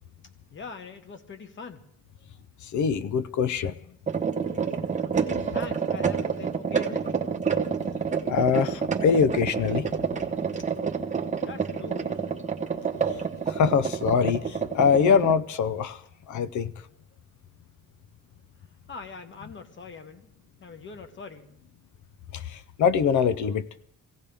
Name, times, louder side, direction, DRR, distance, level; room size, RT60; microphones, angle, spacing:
voice 1, 0.5-1.9 4.8-7.2 11.4-12.3 18.9-20.3 20.6-21.5, left 4 dB, 35° left, 1.2 m, -43 dB
voice 2, 2.6-3.7 8.3-9.9 13.5-16.7 22.3-23.7, left 6 dB, 60° left, 0.5 m, -24 dB
sound 1, 4.1-15.3, right 6 dB, 20° right, 0.9 m, -28 dB
24.5 x 16.5 x 3.4 m
cardioid pair, 175°, 34 cm